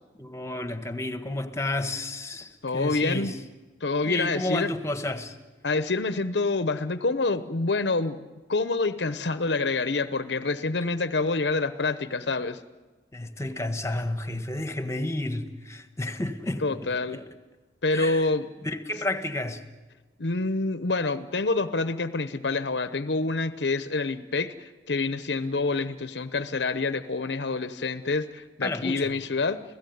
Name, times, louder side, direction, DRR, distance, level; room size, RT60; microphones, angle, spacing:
voice 1, 0.2-3.3 4.1-5.4 13.1-17.2 17.9-18.3 18.6-19.6 28.6-29.1, left 1 dB, 15° left, 8 dB, 1.5 m, -31 dB
voice 2, 2.6-3.3 3.8-4.7 5.6-12.6 16.6-17.2 17.8-18.5 20.2-29.6, left 3 dB, 75° left, 12 dB, 0.9 m, -27 dB
29.5 x 16.5 x 9.4 m, 1.2 s
head